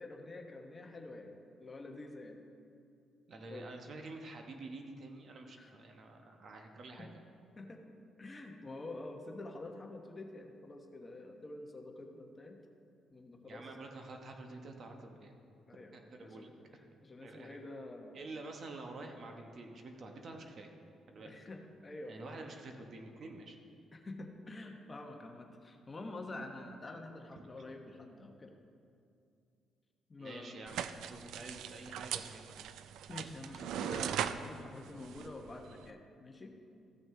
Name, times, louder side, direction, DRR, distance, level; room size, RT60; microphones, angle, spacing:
voice 1, 0.0-1.3 1.6-2.4 3.5-3.7 5.6-5.7 7.0-7.1 7.6-7.8 8.2-12.6 13.1-13.7 15.7-16.0 16.2-16.5 17.0-18.2 21.2-22.4 23.9-28.5 30.1-30.6 31.3-31.4 33.1-36.5, left 2 dB, 30° left, 3 dB, 1.0 m, -47 dB
voice 2, 3.3-7.2 13.4-15.3 15.9-16.5 17.2-17.6 18.1-20.7 21.1-21.3 22.1-23.6 27.3-27.4 30.2-32.6, right 2 dB, 55° right, 3 dB, 1.1 m, -48 dB
sound 1, 30.7-35.9, right 9 dB, 80° right, 0.3 m, -40 dB
14.5 x 6.1 x 3.8 m, 2.5 s
cardioid pair, 90°, 0 cm